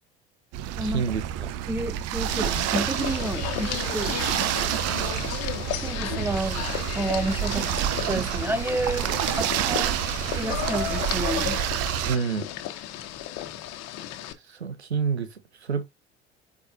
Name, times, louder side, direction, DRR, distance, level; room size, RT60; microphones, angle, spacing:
sound 1, 0.5-12.2, right 11 dB, 50° right, 0.8 m, -28 dB
voice 1, 0.8-1.2 12.1-12.5 14.6-15.3 15.7-15.8, right 6 dB, 90° right, 0.8 m, -27 dB
voice 2, 1.7-4.1 5.8-6.7 6.9-7.7 8.1-9.9 10.3-11.6, right 1 dB, 5° right, 1.3 m, -30 dB
sound 2, 2.3-14.3, left 12 dB, 55° left, 1.2 m, -34 dB
7.8 x 4.8 x 2.8 m
figure-of-eight pair, 65°, 32 cm